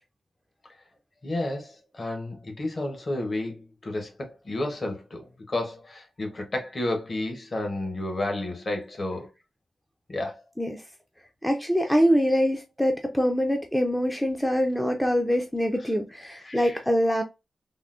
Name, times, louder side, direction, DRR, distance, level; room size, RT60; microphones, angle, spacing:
voice 1, 1.2-9.3 10.1-10.4 16.4-16.8, left 1 dB, 35° left, 0.8 m, -31 dB
voice 2, 11.4-17.2, equal, 5° left, 0.3 m, -24 dB
3.6 x 2.0 x 2.3 m
wide cardioid pair, 135°, 0 cm